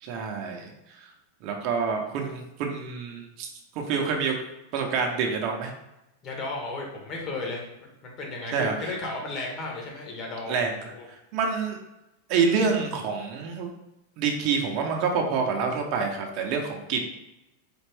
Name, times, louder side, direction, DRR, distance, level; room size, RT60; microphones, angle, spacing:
voice 1, 0.0-0.7 1.0-1.1 1.4-3.5 3.7-4.3 4.7-5.7 8.5-8.9 10.5-10.9 11.3-11.8 12.3-13.7 14.2-17.0, right 5 dB, 50° right, 2 dB, 0.7 m, -27 dB
voice 2, 6.2-11.1, left 2 dB, 40° left, -1 dB, 1.3 m, -34 dB
4.2 x 2.5 x 3.4 m, 0.92 s
hypercardioid pair, 120°, 0 cm